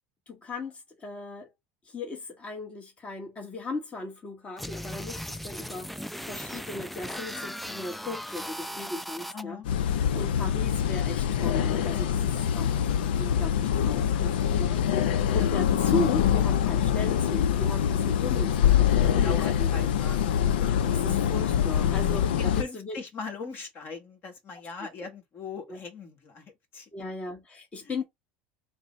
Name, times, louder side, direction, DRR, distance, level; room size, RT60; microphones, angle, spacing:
voice 1, 0.3-1.5 1.8-9.6 10.1-12.8 13.2-19.9 20.8-23.0 25.7-25.8 26.9-28.0, left 2 dB, 25° left, 1.0 m, -37 dB
sound 1, 4.6-9.4, equal, ahead, 0.3 m, -38 dB
voice 2, 9.3-9.7 15.3-15.6 19.0-20.8 22.3-26.9 27.8-27.9, left 4 dB, 45° left, 1.3 m, -40 dB
sound 2, 9.6-22.6, left 9 dB, 80° left, 0.4 m, -24 dB
3.8 x 2.0 x 4.1 m
hypercardioid pair, 90°, 5 cm